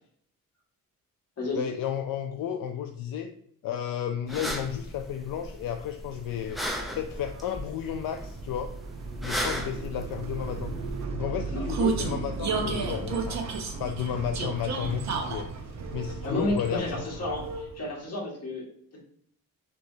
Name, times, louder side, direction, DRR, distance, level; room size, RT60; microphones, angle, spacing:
voice 1, 1.5-3.3 3.6-6.6 7.0-8.7 9.2-10.7 11.1-13.4 13.8-15.5 15.9-17.0, left 9 dB, 80° left, 6 dB, 0.5 m, -32 dB
sound 1, 4.3-11.0, equal, ahead, 0.6 m, -36 dB
Vehicle, 6.0-17.9, right 4 dB, 55° right, 0.7 m, -33 dB
voice 2, 16.2-18.7 18.9-19.0, left 1 dB, 50° left, -3 dB, 1.8 m, -31 dB
6.3 x 3.0 x 2.7 m, 0.64 s
cardioid pair, 130°, 33 cm